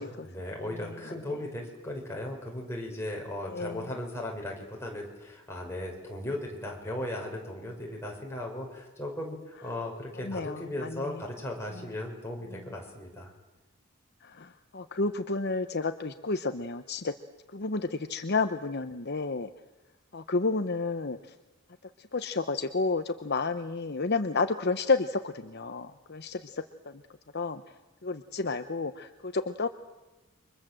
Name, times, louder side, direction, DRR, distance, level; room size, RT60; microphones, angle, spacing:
voice 1, 0.0-13.3, left 1 dB, 10° left, -1 dB, 6.0 m, -37 dB
voice 2, 3.5-3.9 10.2-11.2 14.2-17.1 17.5-19.5 20.1-21.2 22.0-27.0 27.3-27.6 28.0-29.7, left 3 dB, 50° left, 9 dB, 0.9 m, -31 dB
29.5 x 24.5 x 7.7 m, 1.1 s
head